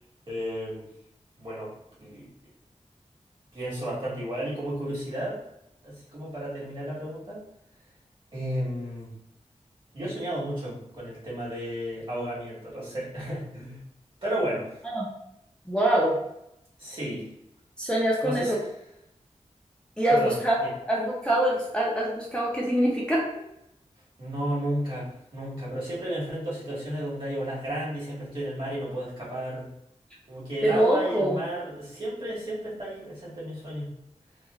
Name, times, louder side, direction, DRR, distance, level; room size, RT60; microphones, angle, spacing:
voice 1, 0.3-0.9 1.4-1.7 2.0-2.3 3.5-5.4 5.8-7.4 8.3-9.1 9.9-13.8 14.2-14.7 16.8-17.3 18.2-18.6 20.1-20.4 20.6-20.7 24.2-29.7 30.3-33.9, right 1 dB, 45° right, -7 dB, 1.5 m, -33 dB
voice 2, 15.7-16.2 17.8-18.6 20.0-20.6 20.9-23.3 30.6-31.4, right 1 dB, 10° left, -6 dB, 0.6 m, -24 dB
3.0 x 2.4 x 2.3 m, 0.79 s
wide cardioid pair, 80°, 12 cm